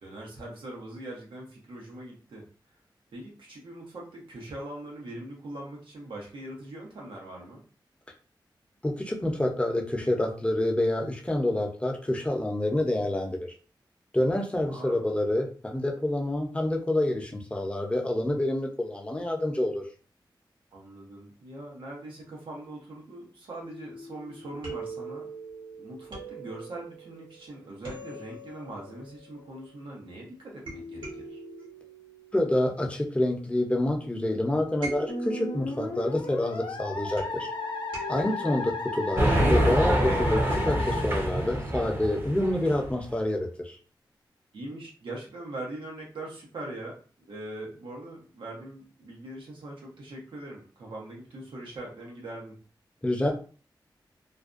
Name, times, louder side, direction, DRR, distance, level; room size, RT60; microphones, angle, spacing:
voice 1, 0.0-2.4 3.1-7.6 14.5-15.1 20.7-25.3 25.8-31.4 38.3-38.5 44.5-47.0 47.3-52.6, right 1 dB, 90° right, -2 dB, 0.8 m, -41 dB
voice 2, 8.8-13.4 14.1-19.8 32.3-37.5 38.1-43.8 53.0-53.3, left 1 dB, 15° left, 1 dB, 0.7 m, -27 dB
sound 1, 23.6-30.1 30.7-33.7 34.8-38.7, right 2 dB, 70° right, 1.1 m, -43 dB
Musical instrument, 35.1-42.0, left 3 dB, 70° left, 0.5 m, -35 dB
sound 2, 39.2-43.0, right 1 dB, 30° right, 0.7 m, -26 dB
2.5 x 2.2 x 2.5 m, 0.38 s
cardioid pair, 60°, 8 cm